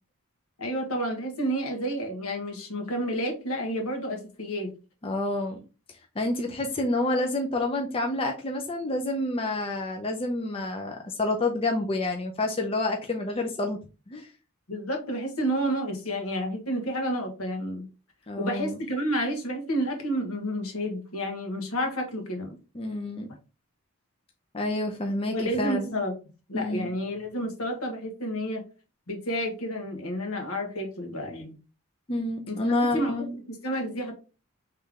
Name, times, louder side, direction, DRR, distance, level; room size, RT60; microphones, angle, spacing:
voice 1, 0.6-4.7 14.7-17.8 18.4-22.6 25.3-26.1 26.5-28.6 29.1-31.6 32.5-33.2 33.5-34.1, equal, 75° left, 3 dB, 1.3 m, -30 dB
voice 2, 5.0-5.6 6.2-14.3 18.3-18.8 22.7-23.3 24.5-26.0 26.5-26.9 32.1-33.4, left 2 dB, 25° left, 2 dB, 0.5 m, -28 dB
3.6 x 3.2 x 3.6 m, 0.32 s
head